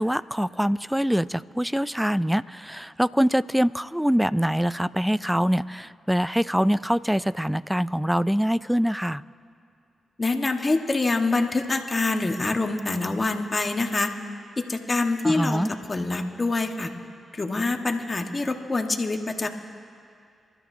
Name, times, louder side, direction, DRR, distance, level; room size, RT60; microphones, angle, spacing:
voice 1, 0.0-9.2 15.2-15.7, equal, 5° right, 18 dB, 0.4 m, -24 dB
voice 2, 10.2-14.1 14.7-16.9 17.3-19.5, left 3 dB, 35° left, 4 dB, 1.5 m, -25 dB
27.0 x 13.0 x 2.8 m, 2.4 s
supercardioid pair, 45°, 0 cm